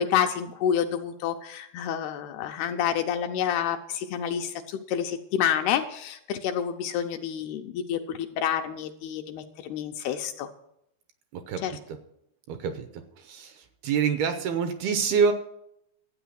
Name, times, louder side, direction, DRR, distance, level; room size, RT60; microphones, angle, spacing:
voice 1, 0.0-10.5 11.6-11.7, left 9 dB, 80° left, 5 dB, 2.4 m, -28 dB
voice 2, 11.3-11.6 12.5-12.9 13.2-13.6 13.8-15.3, right 6 dB, 75° right, 8 dB, 2.5 m, -26 dB
13.0 x 8.8 x 6.3 m, 0.77 s
omnidirectional pair, 5.0 m